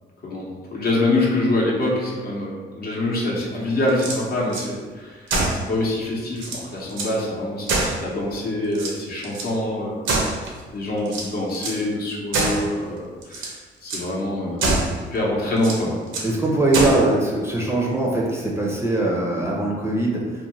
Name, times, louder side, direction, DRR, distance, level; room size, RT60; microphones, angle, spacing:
voice 1, 0.2-5.3 5.5-10.0 10.7-14.8 15.1-15.9, left 1 dB, 50° left, -3 dB, 0.8 m, -25 dB
sound 1, 3.9-4.7 5.3-5.7 6.1-6.2 6.4-7.2 7.7-8.4 8.7-9.5 10.0-10.6 11.1-11.8 12.3-12.7 13.2-13.6 13.9-14.1 14.6-15.0 15.6-16.3 16.7-17.1, right 2 dB, 75° right, 0.6 m, -25 dB
voice 2, 16.2-20.3, right 2 dB, 15° right, -4 dB, 0.5 m, -21 dB
2.5 x 2.2 x 3.1 m, 1.4 s
cardioid pair, 90°, 20 cm